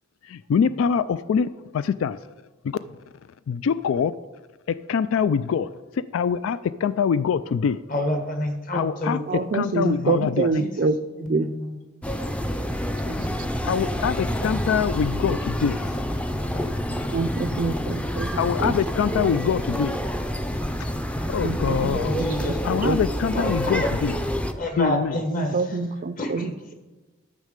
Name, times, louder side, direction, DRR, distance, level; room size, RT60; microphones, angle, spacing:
voice 1, 0.3-2.2 3.5-4.1 4.7-5.7 6.1-7.8 8.7-9.2 9.5-10.7 13.6-15.8 18.4-19.9 21.3-22.2 22.6-24.2 24.8-25.2, left 7 dB, 80° left, 15 dB, 0.3 m, -24 dB
voice 2, 7.9-9.4 9.8-9.9 10.4-10.7 11.2-11.8 16.4-16.9 17.6-17.8 18.7-18.8 20.6-21.0 22.0-22.8 23.3-23.9 24.6-25.8 26.2-26.7, left 1 dB, 45° left, 5 dB, 1.5 m, -30 dB
voice 3, 9.3-11.0 11.3-11.5 13.1-13.2 17.1-18.3 18.6-18.7 21.4-22.5 22.8-23.0 25.4-26.5, right 3 dB, 45° right, 14 dB, 0.4 m, -26 dB
sound 1, 12.0-24.5, equal, 5° left, 0.5 m, -28 dB
12.5 x 6.4 x 5.2 m, 1.2 s
head